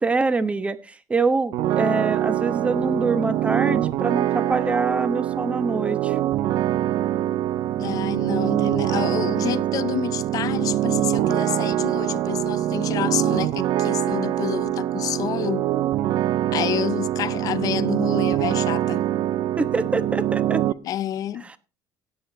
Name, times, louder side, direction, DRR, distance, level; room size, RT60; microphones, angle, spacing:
voice 1, 0.0-6.2 19.6-20.6 21.4-21.6, right 3 dB, 15° right, 1.0 m, -25 dB
sound 1, 1.5-20.7, right 12 dB, 70° right, 0.5 m, -24 dB
voice 2, 7.8-15.7 16.5-19.0 20.8-21.5, left 11 dB, 50° left, 0.7 m, -28 dB
16.5 x 8.0 x 3.9 m
cardioid pair, 130°, 8 cm